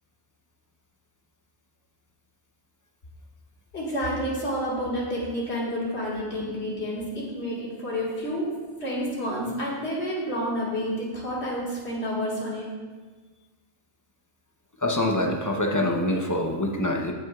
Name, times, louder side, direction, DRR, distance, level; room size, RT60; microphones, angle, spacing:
voice 1, 3.7-8.5 8.8-12.7, equal, 55° left, -6 dB, 2.2 m, -29 dB
voice 2, 14.8-17.1, left 1 dB, 20° left, 0 dB, 0.7 m, -25 dB
18.0 x 6.1 x 2.4 m, 1.4 s
omnidirectional pair, 1.4 m